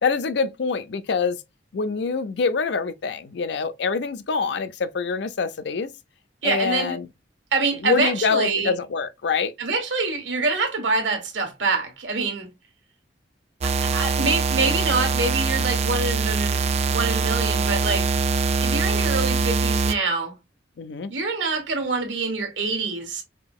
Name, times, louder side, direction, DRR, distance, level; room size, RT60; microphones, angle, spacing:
voice 1, 0.0-1.4 1.7-5.9 6.4-7.1 7.8-9.5 20.8-21.1, left 5 dB, 65° left, 0.4 m, -25 dB
voice 2, 6.4-7.0 7.5-8.7 9.6-12.5 13.6-16.6 16.9-18.1 18.6-20.3 21.1-23.2, right 3 dB, 90° right, 1.2 m, -25 dB
sound 1, 13.6-19.9, right 5 dB, 35° right, 0.3 m, -23 dB
5.0 x 2.7 x 2.3 m
head